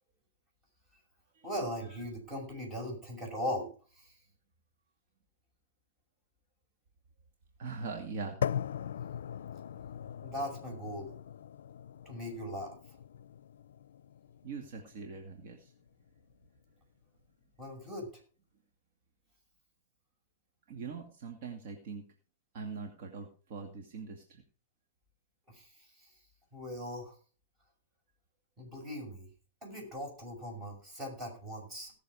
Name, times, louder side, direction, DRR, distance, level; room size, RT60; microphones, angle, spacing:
voice 1, 1.4-3.7 4.0-4.1 10.2-11.1 12.0-12.7 17.6-18.1 25.5-26.1 26.5-27.2 28.6-29.3 29.6-31.9, equal, 20° right, 0 dB, 6.2 m, -39 dB
voice 2, 7.6-8.5 14.4-15.7 20.7-22.1 22.5-24.4, right 5 dB, 55° right, 3 dB, 2.2 m, -42 dB
sound 1, 8.4-16.4, left 9 dB, 85° left, 0.4 m, -40 dB
18.0 x 6.8 x 4.9 m, 0.38 s
hypercardioid pair, 145°, 0 cm